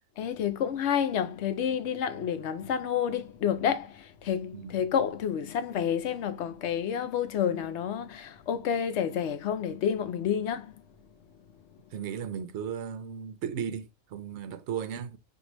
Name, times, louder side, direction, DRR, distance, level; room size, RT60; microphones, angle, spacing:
voice 1, 0.2-10.8, left 8 dB, 65° left, 0.8 m, -29 dB
voice 2, 11.9-15.2, right 7 dB, 60° right, 0.9 m, -35 dB
6.4 x 2.6 x 3.0 m
omnidirectional pair, 1.4 m